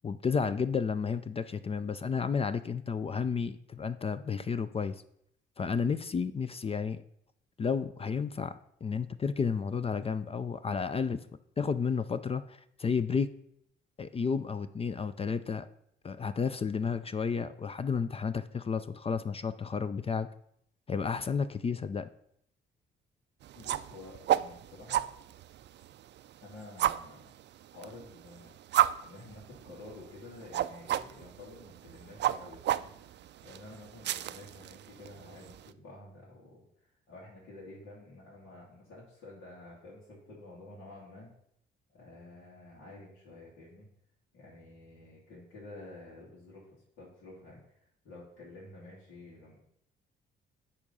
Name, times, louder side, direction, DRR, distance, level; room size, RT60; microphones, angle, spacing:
voice 1, 0.0-4.9 5.6-7.0 7.6-11.2 11.6-13.3 14.0-15.7 16.0-20.3 20.9-22.1, left 5 dB, 30° left, 12 dB, 0.4 m, -32 dB
sound 1, 23.4-35.7, right 12 dB, 65° right, 0.4 m, -34 dB
voice 2, 23.5-25.0 26.4-27.3 27.7-28.8 29.0-41.3 41.9-43.9 44.3-49.6, left 2 dB, 80° left, -7 dB, 2.7 m, -50 dB
9.9 x 3.7 x 5.5 m, 0.70 s
cardioid pair, 90°, 20 cm